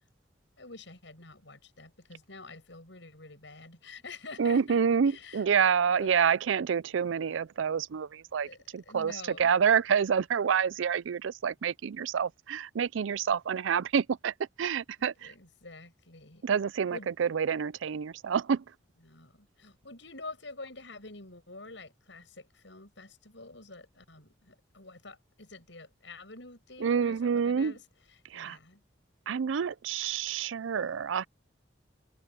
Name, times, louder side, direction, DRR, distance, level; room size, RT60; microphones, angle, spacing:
voice 1, 0.6-5.5 5.9-6.1 8.4-9.6 15.2-16.4 16.9-17.1 19.0-27.8 28.3-28.8, left 3 dB, 75° left, 7.3 m, -47 dB
voice 2, 4.4-8.5 8.7-15.3 16.4-18.6 26.8-27.7 28.3-28.6 29.3-31.3, right 7 dB, 85° right, 0.4 m, -28 dB
head